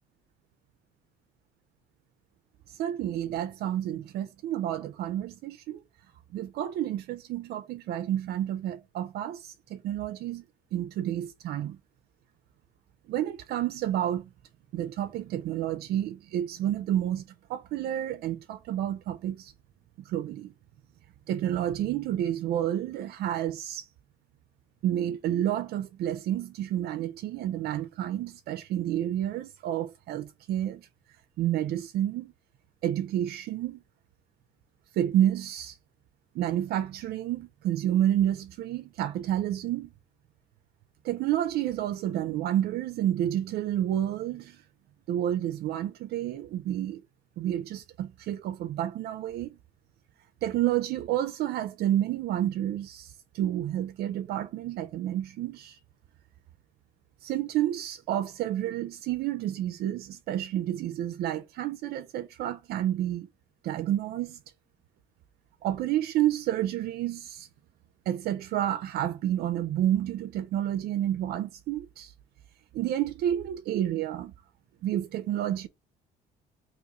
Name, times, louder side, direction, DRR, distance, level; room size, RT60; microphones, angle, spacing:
voice 1, 2.8-5.8 6.3-10.4 10.7-11.8 13.1-14.3 14.7-17.2 17.5-19.5 20.1-20.5 21.3-23.9 24.8-30.9 31.4-32.3 32.8-33.8 35.0-35.8 36.4-39.9 41.0-44.6 45.1-47.0 47.4-49.5 50.4-55.8 57.2-63.3 63.6-64.4 65.6-67.5 68.1-72.1 72.7-74.3 74.8-75.7, right 11 dB, 70° right, 0.4 m, -30 dB
3.0 x 2.9 x 3.5 m
cardioid pair, 110°, 17 cm